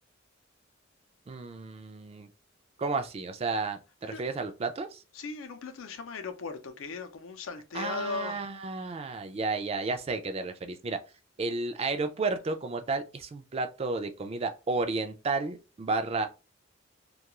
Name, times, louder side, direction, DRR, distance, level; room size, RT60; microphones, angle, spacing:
voice 1, 1.3-2.3 2.8-5.0 7.7-11.0 11.4-16.3, right 3 dB, 30° right, 0.3 m, -32 dB
voice 2, 5.1-8.4, left 4 dB, 80° left, 0.5 m, -37 dB
2.3 x 2.3 x 2.9 m
head